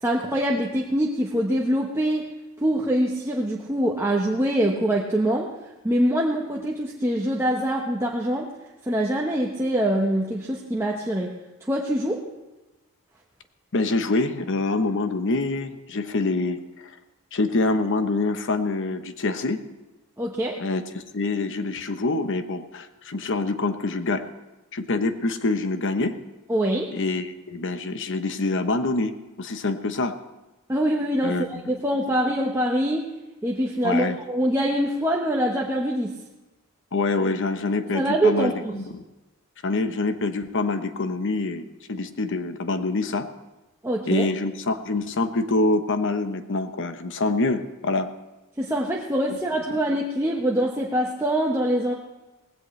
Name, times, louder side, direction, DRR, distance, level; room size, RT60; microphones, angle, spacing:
voice 1, 0.0-2.3 2.6-5.5 5.8-8.5 8.9-11.3 11.7-12.2 20.2-20.6 26.5-26.9 30.7-33.1 33.4-36.1 37.9-38.8 43.8-44.3 48.6-51.9, right 1 dB, 10° right, -2 dB, 1.0 m, -24 dB
voice 2, 13.7-16.6 17.3-19.6 20.6-24.2 24.7-26.2 26.9-30.1 31.2-31.6 33.8-34.2 36.9-39.0 39.6-43.3 44.0-48.1 49.7-49.8, left 3 dB, 55° left, 9 dB, 0.9 m, -25 dB
18.0 x 16.0 x 3.2 m, 1.0 s
head